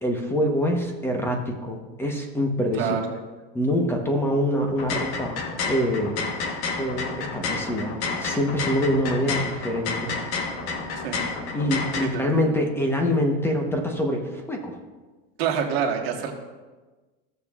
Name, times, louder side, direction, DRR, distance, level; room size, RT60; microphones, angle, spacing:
voice 1, 0.0-3.0 3.5-6.2 6.8-10.1 11.5-14.8, equal, 10° left, 2 dB, 1.0 m, -25 dB
sound 1, 4.7-12.1, left 4 dB, 55° left, 1.2 m, -30 dB
voice 2, 12.0-12.4 15.4-16.3, right 7 dB, 80° right, 1 dB, 1.6 m, -26 dB
15.5 x 6.9 x 2.4 m, 1.3 s
supercardioid pair, 140°, 30 cm